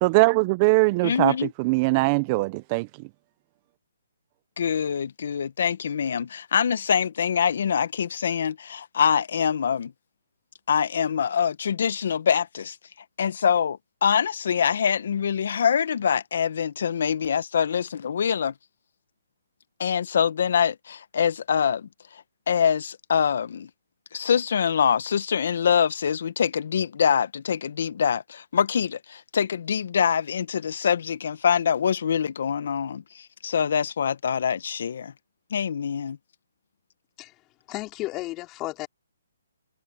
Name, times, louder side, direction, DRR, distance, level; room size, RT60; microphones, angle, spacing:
voice 1, 0.0-1.3 1.6-2.9, right 25 dB, 30° right, 0.7 m, -21 dB
voice 2, 1.0-1.5 4.6-9.9 10.7-12.8 13.2-18.5 19.8-21.9 22.5-23.7 24.1-35.1 35.5-36.2, left 7 dB, 60° left, 1.4 m, -24 dB
voice 3, 37.7-38.9, left 19 dB, 25° left, 5.1 m, -33 dB
hypercardioid pair, 150°, 0 cm